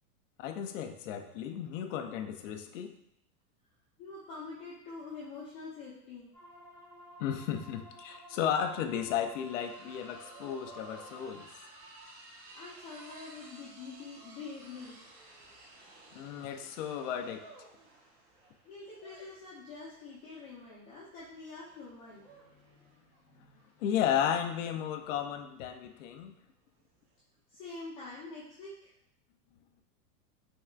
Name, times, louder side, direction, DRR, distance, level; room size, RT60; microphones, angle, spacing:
voice 1, 0.4-2.9 7.2-11.5 16.1-17.4 23.8-26.3, left 9 dB, 55° left, 6 dB, 0.5 m, -34 dB
voice 2, 4.0-6.3 12.5-15.0 18.6-23.8 27.5-28.9, left 3 dB, 30° left, -9 dB, 0.8 m, -46 dB
sound 1, 6.3-11.4, equal, ahead, 0.4 m, -53 dB
sound 2, 8.0-8.1 8.3-27.2, right 2 dB, 45° right, 0.9 m, -55 dB
4.2 x 3.5 x 2.4 m, 0.76 s
supercardioid pair, 165°, 48 cm